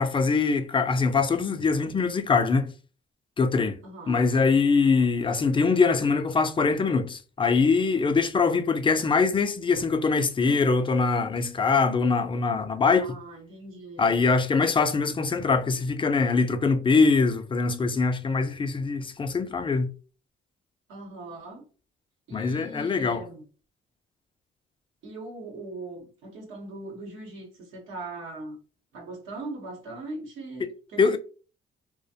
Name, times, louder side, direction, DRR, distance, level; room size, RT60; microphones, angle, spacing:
voice 1, 0.0-2.7 3.4-3.8 4.1-13.1 14.0-19.9 22.3-23.2 30.6-30.7 31.0-31.2, left 4 dB, 25° left, 0.4 m, -23 dB
voice 2, 3.8-4.3 12.9-14.2 20.9-21.6 22.3-23.4 25.0-28.6 28.9-31.2, right 2 dB, 90° right, 0.9 m, -40 dB
2.4 x 2.1 x 2.7 m
cardioid pair, 90°, 20 cm